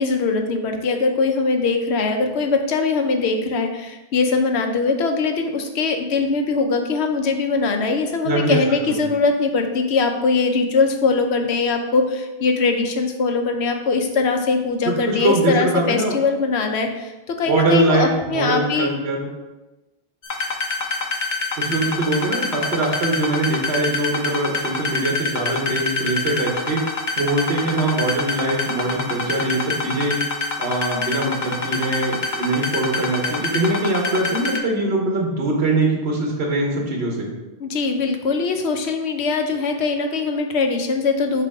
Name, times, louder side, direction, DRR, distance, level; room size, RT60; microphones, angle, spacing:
voice 1, 0.0-18.9 37.6-41.4, left 4 dB, 85° left, 5 dB, 1.0 m, -21 dB
voice 2, 8.2-8.6 8.9-9.0 15.1-16.1 17.4-19.3 21.6-26.8 27.2-30.2 30.6-37.3, right 2 dB, 75° right, 0 dB, 1.3 m, -22 dB
sound 1, 20.2-34.6, left 4 dB, 50° left, 0.8 m, -25 dB
6.8 x 3.0 x 4.8 m, 1.1 s
omnidirectional pair, 1.1 m